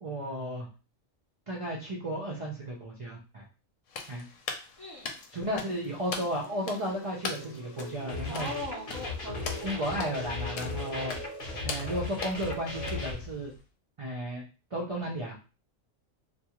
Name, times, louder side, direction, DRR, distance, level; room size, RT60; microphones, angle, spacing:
voice 1, 0.0-0.7 1.5-3.4 4.1-4.2 5.3-8.5 9.6-11.2 11.6-13.5 14.0-14.4 14.7-15.4, equal, 60° right, -2 dB, 0.3 m, -34 dB
sound 1, 3.9-13.6, left 5 dB, 80° left, 0.9 m, -42 dB
voice 2, 4.8-5.2 8.3-9.9, left 1 dB, 35° left, -4 dB, 0.4 m, -40 dB
sound 2, 6.3-13.0, equal, 40° right, 0.7 m, -44 dB
sound 3, 8.1-13.1, left 3 dB, 50° left, 0.8 m, -37 dB
2.3 x 2.3 x 2.8 m, 0.34 s
omnidirectional pair, 1.3 m